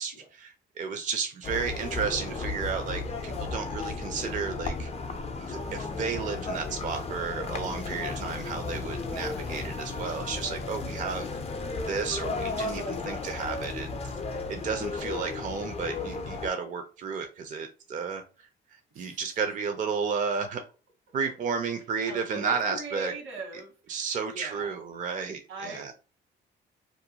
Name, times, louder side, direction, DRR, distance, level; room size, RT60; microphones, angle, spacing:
voice 1, 0.0-4.9 5.4-11.3 11.9-13.9 14.5-18.2 19.0-20.6 21.1-23.1 23.9-25.9, right 5 dB, 40° right, 6 dB, 0.4 m, -32 dB
sound 1, 1.4-16.5, left 3 dB, 30° left, 0.4 m, -34 dB
voice 2, 22.1-24.0 24.3-24.7 25.5-25.9, right 3 dB, 80° right, 2 dB, 1.1 m, -40 dB
2.5 x 2.1 x 2.8 m, 0.34 s
cardioid pair, 90°, 20 cm